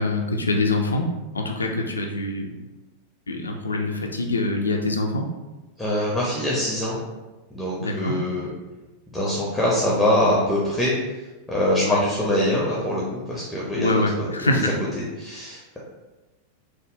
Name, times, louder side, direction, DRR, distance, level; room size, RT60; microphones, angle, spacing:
voice 1, 0.0-2.6 3.3-5.3 7.8-8.2 11.8-12.0 13.8-14.8, left 2 dB, 75° left, 2 dB, 0.3 m, -24 dB
voice 2, 5.8-7.0 7.5-8.5 9.1-11.0 11.5-15.8, left 1 dB, 5° left, -6 dB, 0.6 m, -24 dB
3.4 x 2.0 x 2.5 m, 1.1 s
figure-of-eight pair, 90°, 0 cm